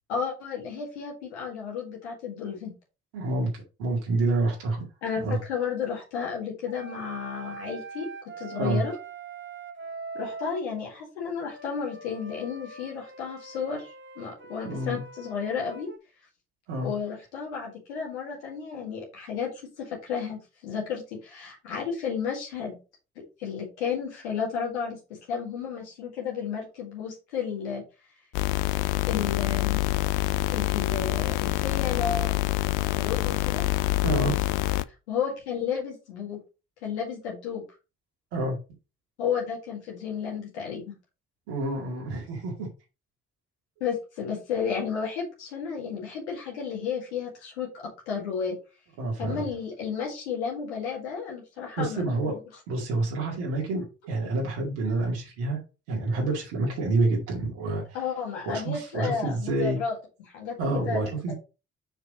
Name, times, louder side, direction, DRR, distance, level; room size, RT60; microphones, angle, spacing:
voice 1, 0.1-2.7 5.0-8.1 8.4-9.0 10.1-15.9 16.8-19.5 19.8-22.8 23.4-27.8 29.1-29.8 30.5-33.6 34.7-36.4 36.8-37.6 39.2-40.9 43.8-48.6 49.2-52.3 57.9-60.0 60.2-61.0 61.3-61.4, left 6 dB, 90° left, -2 dB, 1.9 m, -32 dB
voice 2, 3.1-4.9 5.2-5.4 8.6-8.8 14.6-15.0 16.7-16.9 34.0-34.3 38.3-38.6 41.5-42.7 49.0-49.5 51.8-52.3 52.7-55.6 55.9-57.8 58.5-59.8 60.6-61.3, right 2 dB, 80° right, -1 dB, 2.2 m, -28 dB
sound 1, 6.7-10.6 11.4-16.0, right 4 dB, 35° right, 1.4 m, -42 dB
sound 2, 28.3-34.8, left 19 dB, 70° left, 0.5 m, -26 dB
5.6 x 4.8 x 4.1 m, 0.30 s
hypercardioid pair, 40°, 33 cm